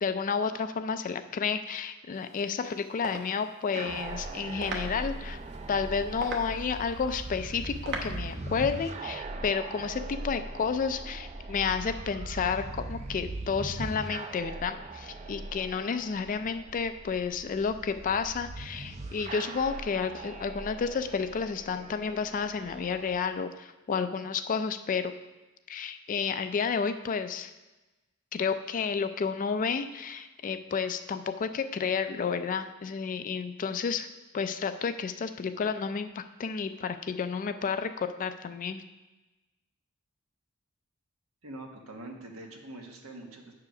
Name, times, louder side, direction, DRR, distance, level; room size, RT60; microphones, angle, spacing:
voice 1, 0.0-5.4 5.7-25.1 25.7-27.5 28.3-34.1 34.3-38.8, left 5 dB, 40° left, 9 dB, 0.4 m, -31 dB
sound 1, 2.1-8.3, right 3 dB, 55° right, 1.0 m, -42 dB
sound 2, 3.7-23.1, right 2 dB, 35° right, 0.5 m, -40 dB
voice 2, 41.4-43.5, right 2 dB, 90° right, 2 dB, 1.2 m, -44 dB
7.5 x 4.8 x 5.9 m, 1.1 s
head